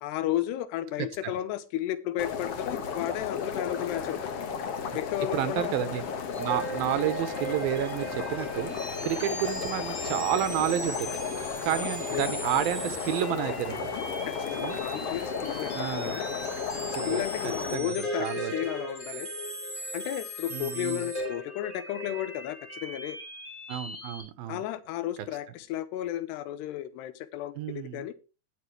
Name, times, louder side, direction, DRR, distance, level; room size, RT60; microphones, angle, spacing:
voice 1, 0.0-4.3 4.9-5.8 12.1-12.3 14.2-16.3 16.9-19.3 19.9-23.2 24.5-28.1, left 13 dB, 85° left, 13 dB, 3.0 m, -33 dB
sound 1, 2.2-17.8, left 6 dB, 65° left, 1.4 m, -34 dB
voice 2, 5.3-6.0 6.4-11.2 11.6-14.0 14.6-14.8 15.7-16.2 17.0-17.2 17.7-18.5 20.5-21.0 23.7-24.6 27.6-28.1, right 11 dB, 75° right, 12 dB, 2.4 m, -30 dB
sound 2, 6.3-24.2, equal, 10° left, 4.0 m, -38 dB
19.0 x 7.0 x 3.1 m, 0.30 s
omnidirectional pair, 4.8 m